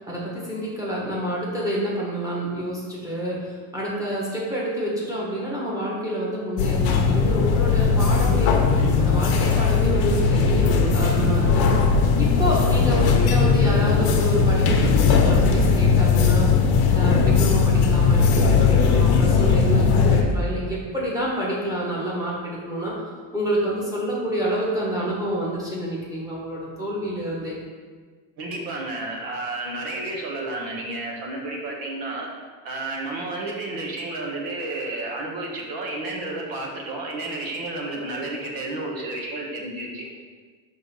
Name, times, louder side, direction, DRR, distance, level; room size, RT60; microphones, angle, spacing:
voice 1, 0.1-8.5 8.9-11.7 12.2-16.5 16.9-22.9 23.3-27.6, right 1 dB, 10° right, -6 dB, 1.5 m, -28 dB
sound 1, 6.6-20.2, left 5 dB, 70° left, 0.9 m, -18 dB
voice 2, 28.4-32.3 32.6-40.1, right 2 dB, 60° right, -1 dB, 1.4 m, -31 dB
5.4 x 3.4 x 5.6 m, 1.5 s
cardioid pair, 150°, 39 cm